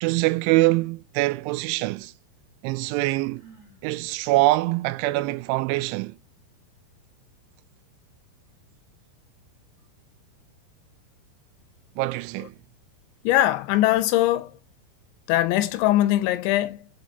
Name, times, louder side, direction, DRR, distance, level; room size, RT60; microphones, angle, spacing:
voice 1, 0.0-2.1 2.6-3.4 3.8-6.1 12.0-12.5, right 19 dB, 90° right, 3.0 m, -24 dB
Sigh, 3.2-3.9, right 5 dB, 20° right, 3.1 m, -52 dB
voice 2, 13.2-14.6 15.3-16.9, left 14 dB, 85° left, 3.0 m, -21 dB
6.0 x 5.3 x 4.0 m
omnidirectional pair, 5.3 m